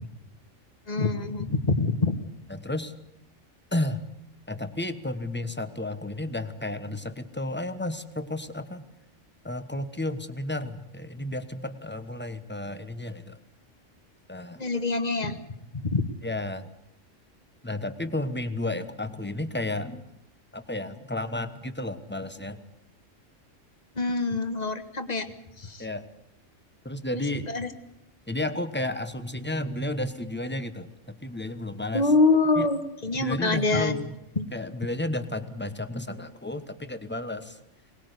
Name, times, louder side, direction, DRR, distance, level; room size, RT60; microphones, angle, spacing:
voice 1, 0.9-2.2 14.6-15.4 15.7-16.1 23.9-25.3 25.6-25.8 27.1-27.7 31.9-34.0 34.4-34.5, left 3 dB, 35° left, 10 dB, 1.6 m, -25 dB
voice 2, 2.5-2.9 3.7-4.0 4.5-8.8 9.4-13.4 14.3-14.6 16.2-16.7 17.6-20.0 20.5-22.6 25.8-26.0 26.8-27.5 28.3-32.1 32.6-32.7 33.2-34.2 34.5-37.6, left 1 dB, 10° left, 10 dB, 1.1 m, -32 dB
23.0 x 19.5 x 8.2 m, 0.84 s
omnidirectional pair, 1.3 m